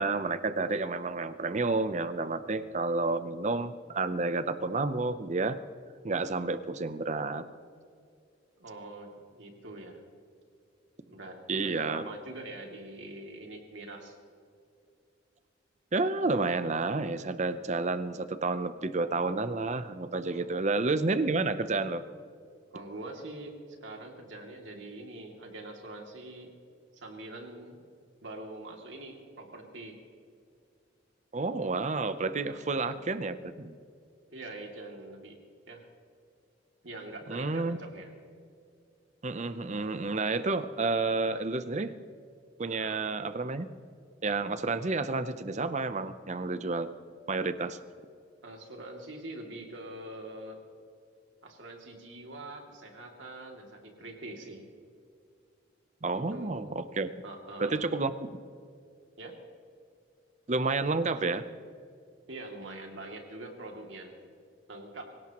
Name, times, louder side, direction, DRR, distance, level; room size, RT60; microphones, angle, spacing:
voice 1, 0.0-5.6 6.0-7.5 11.5-12.0 15.9-22.0 31.3-33.7 37.3-37.8 39.2-41.9 42.6-43.7 44.2-46.9 47.3-47.8 56.0-57.1 57.6-58.3 60.5-61.4, right 3 dB, 40° right, 11 dB, 0.7 m, -30 dB
voice 2, 8.6-10.0 11.0-14.2 20.3-20.7 22.7-23.5 23.8-26.5 26.9-27.9 28.2-30.0 32.5-33.0 34.3-35.4 35.7-35.9 36.8-38.1 42.7-43.0 47.6-47.7 48.4-50.6 51.4-54.7 56.3-56.6 57.2-57.8 59.2-59.3 62.3-64.3 64.7-65.0, right 2 dB, 85° right, 1 dB, 2.6 m, -44 dB
24.5 x 17.0 x 3.0 m, 2.4 s
head